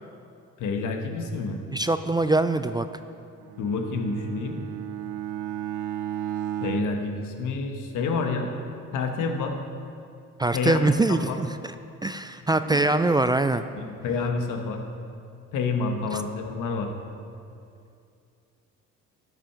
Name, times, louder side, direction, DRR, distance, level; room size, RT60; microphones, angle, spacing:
voice 1, 0.6-1.6 3.6-4.6 6.6-8.5 8.9-9.6 10.5-11.4 12.7-12.8 13.7-14.8 15.5-16.9, left 4 dB, 80° left, 4 dB, 1.3 m, -28 dB
voice 2, 1.7-2.9 10.4-11.7 12.0-13.7 16.1-16.2, right 2 dB, 15° right, 10 dB, 0.3 m, -23 dB
Bowed string instrument, 3.4-8.1, right 11 dB, 85° right, 0.5 m, -34 dB
12.5 x 6.0 x 5.8 m, 2.5 s
cardioid pair, 90°, 30 cm